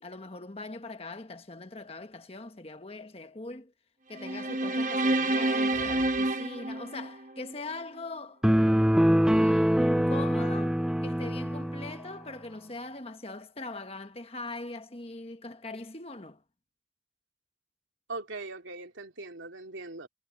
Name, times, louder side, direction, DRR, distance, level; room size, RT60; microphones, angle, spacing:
voice 1, 0.0-3.7 4.1-8.4 9.2-16.4, left 2 dB, 30° left, 1.3 m, -41 dB
sound 1, 4.2-7.5, right 2 dB, 40° right, 1.2 m, -28 dB
sound 2, 5.5-6.3 6.7-6.8, equal, 65° left, 7.5 m, -49 dB
sound 3, 8.4-12.0, equal, 5° right, 0.5 m, -24 dB
voice 2, 18.1-20.1, right 3 dB, 80° right, 3.1 m, -40 dB
head